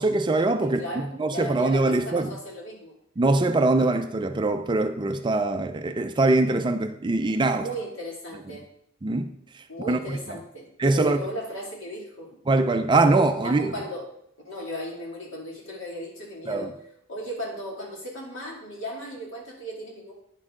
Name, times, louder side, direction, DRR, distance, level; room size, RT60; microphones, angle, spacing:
voice 1, 0.0-0.8 1.2-2.3 3.2-7.7 9.0-9.3 9.9-10.0 10.8-11.2 12.5-13.7 16.5-16.7, right 2 dB, 25° right, 8 dB, 0.4 m, -22 dB
voice 2, 0.6-2.9 3.7-3.9 7.4-8.6 9.7-10.7 10.9-12.4 13.0-14.1 14.4-16.7 17.1-20.1, equal, 65° left, -2 dB, 2.4 m, -36 dB
9.6 x 6.5 x 3.7 m, 0.72 s
head